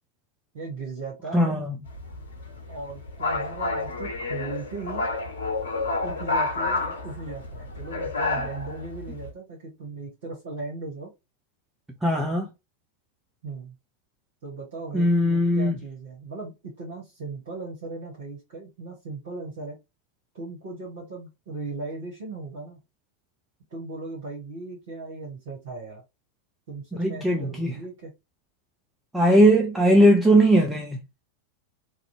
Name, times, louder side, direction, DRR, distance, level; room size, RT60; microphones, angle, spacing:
voice 1, 0.5-1.6 2.7-5.0 6.0-11.1 13.4-13.8 14.4-19.8 20.3-22.8 23.7-26.0 26.7-28.1, right 3 dB, 55° right, 0.9 m, -37 dB
voice 2, 1.3-1.8 12.0-12.5 14.9-15.7 26.9-27.7 29.1-31.0, right 1 dB, 5° right, 0.4 m, -19 dB
sound 1, 1.9-9.3, left 3 dB, 70° left, 0.8 m, -30 dB
2.5 x 2.0 x 2.6 m
figure-of-eight pair, 90°, 0 cm